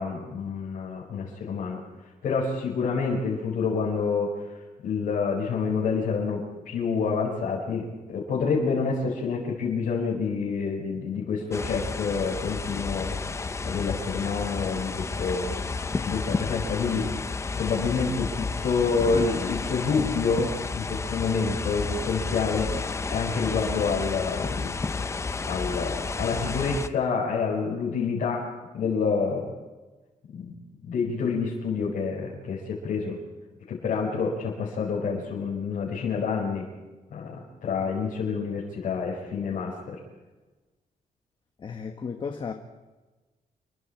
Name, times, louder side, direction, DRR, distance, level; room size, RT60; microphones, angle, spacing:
voice 1, 0.0-1.8 2.2-4.5 4.8-15.6 16.0-17.1 17.5-22.8 23.1-24.7 25.5-28.5 28.7-29.5 30.3-30.6 30.8-33.2 33.7-36.7 37.1-40.0, left 5 dB, 75° left, -5 dB, 5.9 m, -28 dB
sound 1, 11.5-26.9, left 4 dB, 20° left, 0.7 m, -31 dB
voice 2, 41.6-42.5, left 5 dB, 35° left, 5 dB, 1.3 m, -34 dB
29.0 x 23.5 x 4.6 m, 1.2 s
wide cardioid pair, 180°, 14 cm